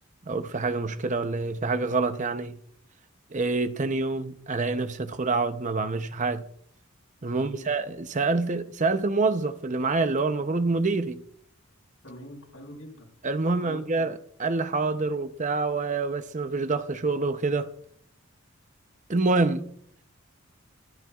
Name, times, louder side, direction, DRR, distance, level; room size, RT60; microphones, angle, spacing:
voice 1, 0.3-2.6 3.3-6.4 7.2-11.2 13.2-17.7 19.1-19.7, right 3 dB, 35° right, 0.7 m, -26 dB
voice 2, 7.3-7.7 12.0-13.1 13.6-14.1, equal, 80° left, 5.3 m, -44 dB
25.0 x 12.5 x 2.4 m
head